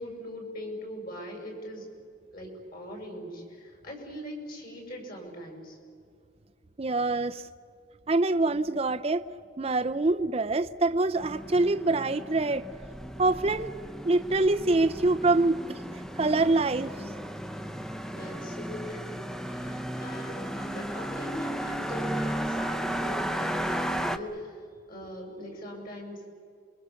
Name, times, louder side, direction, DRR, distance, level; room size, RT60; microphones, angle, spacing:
voice 1, 0.0-1.9 2.3-5.8 18.1-26.3, equal, 50° left, 6.3 m, -41 dB
voice 2, 6.8-7.4 8.1-9.2 9.6-12.7 13.2-13.7 14.0-15.6 16.2-16.9, right 2 dB, 30° right, 0.5 m, -25 dB
sound 1, 11.1-24.2, equal, 5° left, 0.7 m, -34 dB
28.0 x 23.5 x 7.0 m
head